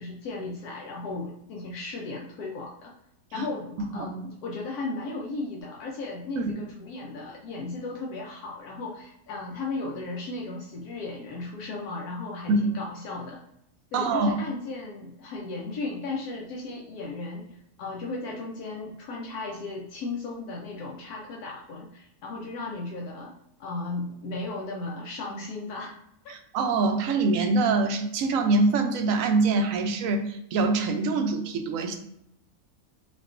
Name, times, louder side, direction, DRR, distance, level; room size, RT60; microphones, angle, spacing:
voice 1, 0.0-2.9 3.3-13.4 13.9-23.3 23.6-25.9 26.2-26.3, left 3 dB, 80° left, -2 dB, 1.2 m, -35 dB
voice 2, 3.8-4.1 6.4-6.5 12.5-12.7 13.9-14.4 26.5-32.0, right 3 dB, 70° right, 6 dB, 0.9 m, -24 dB
5.8 x 2.4 x 2.4 m, 0.77 s
omnidirectional pair, 1.6 m